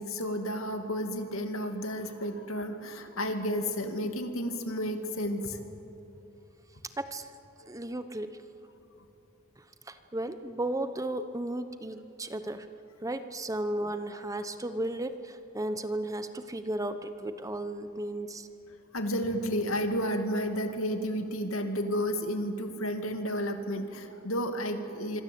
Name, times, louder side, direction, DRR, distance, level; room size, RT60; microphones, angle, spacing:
voice 1, 0.0-5.6 18.9-25.2, equal, 70° left, 6 dB, 2.5 m, -32 dB
voice 2, 7.0-7.3 7.7-8.3 9.9-12.7 13.0-18.5, right 1 dB, 15° right, 10 dB, 0.9 m, -34 dB
26.0 x 25.0 x 8.6 m, 3.0 s
head